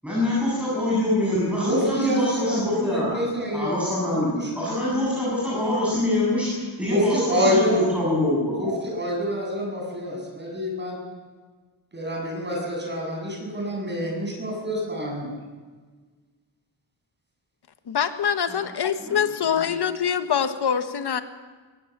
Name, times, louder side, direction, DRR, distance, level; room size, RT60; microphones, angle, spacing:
voice 1, 0.0-3.2 3.5-8.8 18.5-18.6 19.0-19.3, left 1 dB, 5° right, -8 dB, 7.9 m, -25 dB
voice 2, 1.6-4.5 6.9-7.8 8.6-11.0 11.9-15.3, equal, 20° right, 0 dB, 7.8 m, -27 dB
voice 3, 17.9-21.2, left 8 dB, 55° left, 9 dB, 1.5 m, -24 dB
23.0 x 18.0 x 7.5 m, 1.4 s
wide cardioid pair, 155°, 47 cm